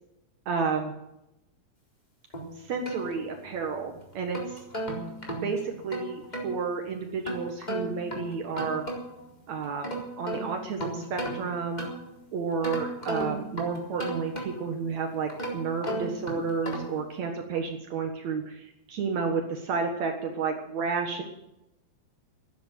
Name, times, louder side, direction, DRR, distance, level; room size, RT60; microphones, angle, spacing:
voice 1, 0.4-0.9 2.6-4.6 5.4-8.8 9.5-11.9 12.3-21.2, right 5 dB, 85° right, 3 dB, 1.6 m, -31 dB
sound 1, 2.3-3.7 4.1-6.5 7.2-9.3 9.6-12.2 12.6-14.8 15.3-17.0, right 1 dB, 10° left, 3.1 m, -35 dB
13.5 x 11.5 x 9.2 m, 0.86 s
omnidirectional pair, 5.8 m